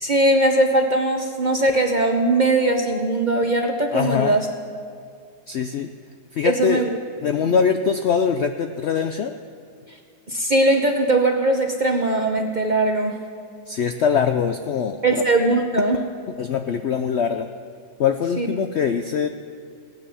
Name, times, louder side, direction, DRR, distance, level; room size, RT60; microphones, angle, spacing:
voice 1, 0.0-4.5 6.4-6.9 7.4-7.5 10.3-13.2 15.0-16.0 18.4-18.5, right 2 dB, 40° right, 3 dB, 0.6 m, -20 dB
voice 2, 3.9-4.4 5.5-5.9 6.3-6.8 7.2-9.4 13.7-15.2 16.4-17.5 18.0-19.3, left 7 dB, 85° left, 7 dB, 0.5 m, -22 dB
17.5 x 9.6 x 7.0 m, 2.3 s
omnidirectional pair, 1.8 m